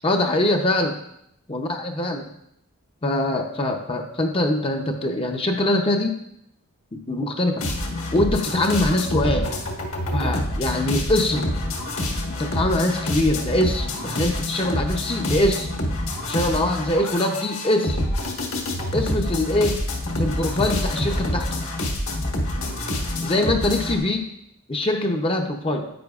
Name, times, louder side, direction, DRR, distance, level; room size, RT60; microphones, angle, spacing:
voice 1, 0.0-1.0 1.5-2.3 3.0-6.2 7.1-7.6 8.1-9.5 10.1-11.5 12.4-15.7 16.3-18.0 18.9-19.8 20.2-21.5 23.2-24.3 24.7-25.9, left 1 dB, 25° left, 3 dB, 0.7 m, -23 dB
sound 1, 7.6-24.0, left 1 dB, 65° left, 1.4 m, -27 dB
10.0 x 8.9 x 2.4 m, 0.77 s
head